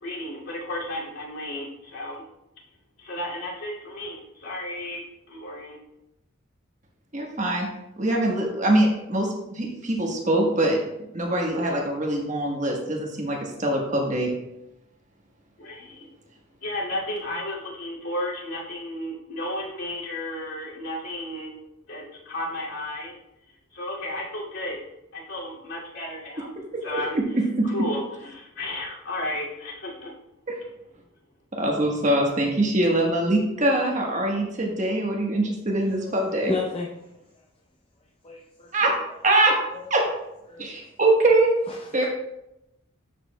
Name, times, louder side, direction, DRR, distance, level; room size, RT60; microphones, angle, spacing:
voice 1, 0.0-2.2 3.0-5.8 15.6-16.1 16.6-21.5 21.9-23.2 23.7-24.8 25.1-26.5 26.8-27.2 27.6-28.0 28.3-30.1, left 1 dB, 70° left, -5 dB, 2.4 m, -33 dB
voice 2, 7.1-7.7 8.0-10.8 11.1-14.3 26.7-26.8 27.1-27.7 30.5-30.6 31.6-36.5 38.7-38.9 39.2-39.5 39.9-40.0 40.6-41.5 41.9-42.1, right 1 dB, 35° right, 0 dB, 1.2 m, -23 dB
voice 3, 36.0-36.9 38.2-38.7 39.7-39.9 40.5-40.7 41.8-42.1, left 3 dB, 25° left, -2 dB, 0.6 m, -32 dB
12.0 x 5.0 x 2.2 m, 0.86 s
head